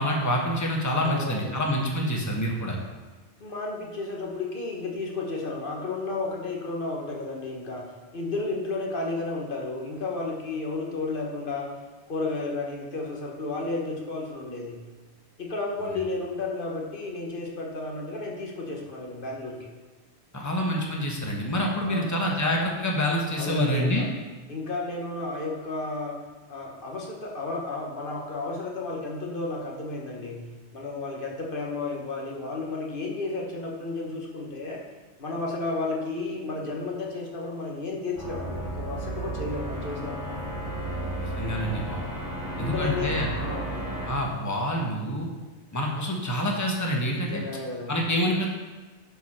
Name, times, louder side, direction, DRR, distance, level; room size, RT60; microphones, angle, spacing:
voice 1, 0.0-2.8 20.3-24.1 41.2-42.0 42.6-43.3 44.1-45.3 45.7-47.4 47.9-48.5, equal, 15° left, -1 dB, 1.1 m, -27 dB
voice 2, 1.0-1.6 3.4-11.7 12.1-14.8 15.4-19.6 21.8-22.1 23.4-24.1 24.5-26.1 26.5-30.5 30.7-34.8 35.2-40.4 42.6-44.2 47.2-48.0, left 3 dB, 50° left, -1 dB, 1.6 m, -32 dB
sound 1, 38.2-44.1, right 1 dB, 90° left, 2.4 m, -33 dB
11.5 x 4.6 x 4.3 m, 1.3 s
omnidirectional pair, 1.1 m